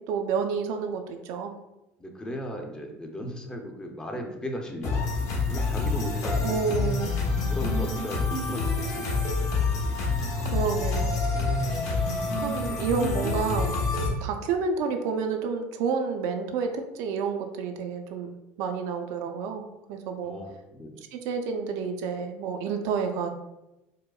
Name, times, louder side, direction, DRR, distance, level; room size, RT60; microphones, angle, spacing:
voice 1, 0.0-1.5 6.4-7.2 10.5-11.2 12.4-13.8 14.2-20.3 21.1-23.3, right 5 dB, 70° right, 5 dB, 0.4 m, -29 dB
voice 2, 2.0-5.1 5.5-6.8 7.4-9.3 12.4-12.6 20.2-21.0, equal, 15° left, 2 dB, 0.6 m, -37 dB
sound 1, 4.8-14.1, left 3 dB, 55° left, 1.0 m, -27 dB
4.9 x 2.0 x 2.3 m, 0.95 s
supercardioid pair, 105°, 6 cm